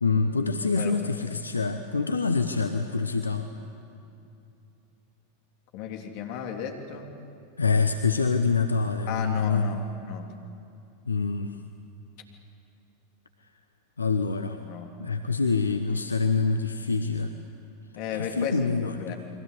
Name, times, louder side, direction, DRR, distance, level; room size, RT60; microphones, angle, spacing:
voice 1, 0.0-3.5 7.6-9.8 11.1-11.5 14.0-14.6 15.0-17.3 18.2-19.1, left 4 dB, 85° left, 7 dB, 1.0 m, -26 dB
voice 2, 5.7-7.1 9.1-10.3 14.6-14.9 18.0-18.6 18.8-19.2, left 8 dB, 50° left, 3 dB, 3.2 m, -34 dB
30.0 x 23.0 x 8.4 m, 2.7 s
figure-of-eight pair, 90°, 0 cm